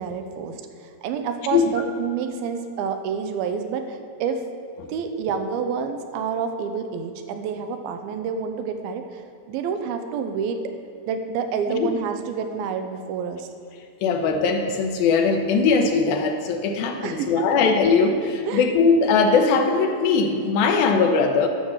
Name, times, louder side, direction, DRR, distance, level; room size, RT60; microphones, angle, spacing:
voice 1, 0.0-4.4 4.9-9.2 9.5-10.7 11.1-13.5 17.0-17.5 18.5-18.6, right 6 dB, 85° right, 7 dB, 2.6 m, -28 dB
voice 2, 14.0-21.5, left 4 dB, 80° left, 4 dB, 2.7 m, -20 dB
11.0 x 7.2 x 6.4 m, 2.4 s
omnidirectional pair, 4.3 m